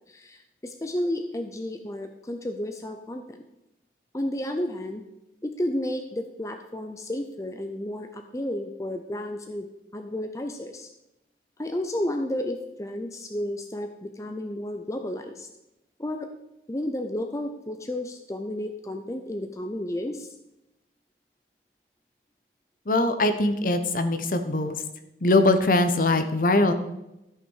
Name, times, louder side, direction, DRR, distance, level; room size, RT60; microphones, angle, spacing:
voice 1, 0.1-3.4 4.1-5.0 5.4-10.9 11.6-15.5 16.0-16.3 16.7-20.3, left 1 dB, 20° left, 5 dB, 0.6 m, -32 dB
voice 2, 22.9-24.8 25.2-26.7, left 2 dB, 50° left, 8 dB, 0.9 m, -22 dB
13.5 x 6.0 x 4.7 m, 0.92 s
head